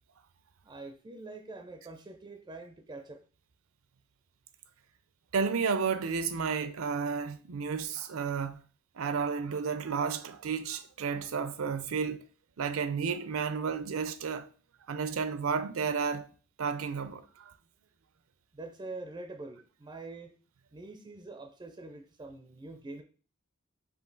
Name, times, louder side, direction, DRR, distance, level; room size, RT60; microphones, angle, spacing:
voice 1, 0.6-3.2 18.5-20.3 20.7-23.0, right 2 dB, 20° right, 0.4 m, -45 dB
voice 2, 5.3-8.6 9.0-12.2 12.6-14.5 14.9-16.3 16.6-17.5, right 5 dB, 75° right, 0.5 m, -32 dB
5.1 x 2.7 x 3.9 m
head